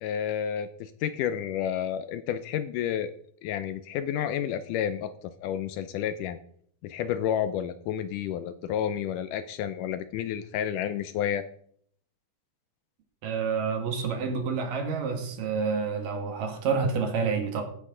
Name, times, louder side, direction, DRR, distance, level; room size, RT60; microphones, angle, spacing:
voice 1, 0.0-3.1 3.4-6.4 6.8-11.4, left 9 dB, 80° left, 12 dB, 2.0 m, -30 dB
voice 2, 13.2-17.6, right 5 dB, 70° right, 4 dB, 3.3 m, -28 dB
14.5 x 9.8 x 3.8 m, 0.63 s
omnidirectional pair, 4.1 m